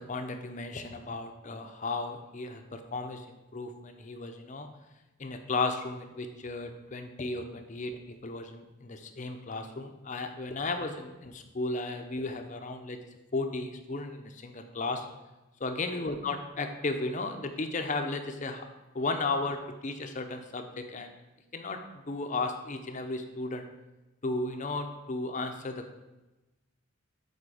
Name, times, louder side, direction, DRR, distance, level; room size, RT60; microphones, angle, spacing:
voice 1, 0.0-4.7 5.2-13.0 13.3-15.1 15.6-18.7 18.9-21.2 21.5-23.7 24.2-25.9, left 3 dB, 35° left, 6 dB, 0.5 m, -35 dB
7.6 x 4.3 x 4.8 m, 1.1 s
head